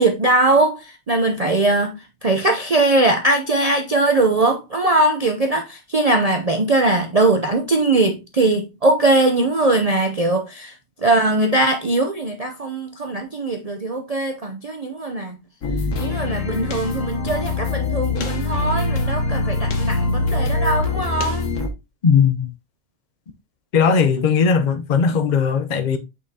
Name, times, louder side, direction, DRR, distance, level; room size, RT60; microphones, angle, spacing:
voice 1, 0.0-10.7 11.0-15.4 16.0-21.5, right 2 dB, 45° right, 0.5 m, -20 dB
sound 1, 15.6-21.7, left 3 dB, 60° left, 1.4 m, -23 dB
voice 2, 22.0-22.5 23.7-26.0, left 6 dB, 45° left, 0.6 m, -18 dB
6.3 x 5.5 x 2.8 m
omnidirectional pair, 1.5 m